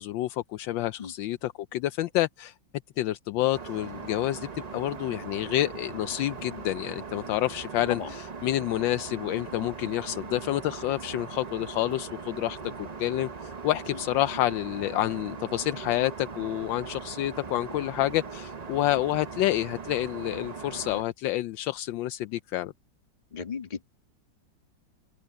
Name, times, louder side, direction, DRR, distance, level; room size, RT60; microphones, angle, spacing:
voice 1, 0.0-2.5 3.0-22.7, left 14 dB, 80° left, 1.3 m, -29 dB
Aircraft, 3.5-21.0, right 5 dB, 40° right, 0.5 m, -40 dB
voice 2, 23.3-23.9, left 6 dB, 25° left, 1.7 m, -35 dB
open air
omnidirectional pair, 2.0 m